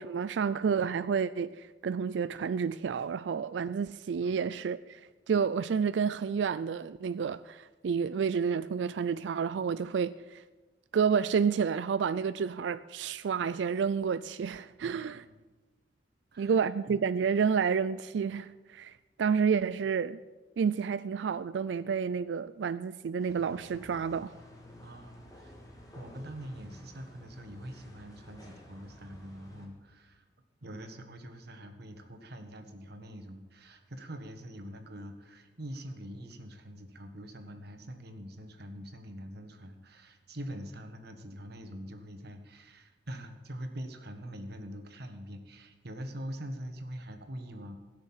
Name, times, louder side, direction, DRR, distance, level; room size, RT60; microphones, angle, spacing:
voice 1, 0.0-5.0 5.3-10.4 10.9-15.3 16.4-18.9 19.2-20.2 20.6-24.3, right 6 dB, 80° right, 0.4 m, -30 dB
voice 2, 14.8-15.4 16.3-17.0 24.8-25.6 25.9-30.3 30.6-47.8, equal, 65° right, 1.6 m, -44 dB
sound 1, 23.2-29.6, left 1 dB, 20° left, 2.7 m, -52 dB
16.0 x 6.7 x 8.8 m
head